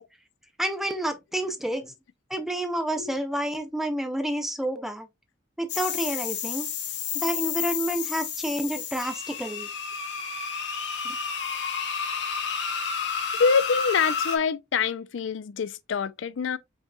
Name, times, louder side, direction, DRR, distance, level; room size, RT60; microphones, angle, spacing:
voice 1, 0.6-1.9 2.3-5.1 5.6-6.7 7.1-9.7 11.0-11.2, right 1 dB, ahead, 0.5 m, -29 dB
sound 1, 5.7-14.4, left 6 dB, 60° left, 0.9 m, -31 dB
voice 2, 13.4-16.6, left 5 dB, 75° left, 0.4 m, -25 dB
5.3 x 4.0 x 2.3 m
head